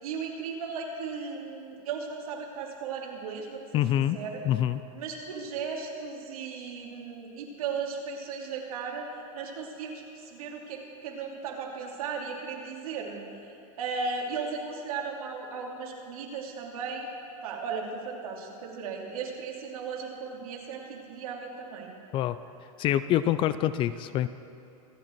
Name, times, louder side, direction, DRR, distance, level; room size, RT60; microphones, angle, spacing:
voice 1, 0.0-4.4 4.9-13.2 13.8-17.1 17.4-21.9, right 5 dB, 75° right, 0 dB, 2.8 m, -36 dB
voice 2, 3.7-4.2 4.4-4.8 22.1-22.4 22.8-24.3, left 12 dB, 30° left, 14 dB, 0.4 m, -25 dB
24.5 x 8.8 x 4.5 m, 2.9 s
supercardioid pair, 140°, 19 cm